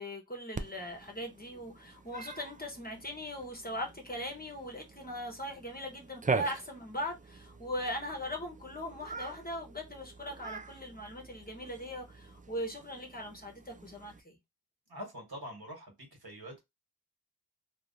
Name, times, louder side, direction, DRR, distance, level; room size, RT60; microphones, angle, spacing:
voice 1, 0.0-14.4, equal, 25° left, 1.0 m, -40 dB
Cat, 0.5-14.2, right 4 dB, 20° right, 0.3 m, -42 dB
voice 2, 14.9-16.6, equal, 65° right, 1.5 m, -45 dB
3.0 x 2.5 x 2.6 m
wide cardioid pair, 50°, 40 cm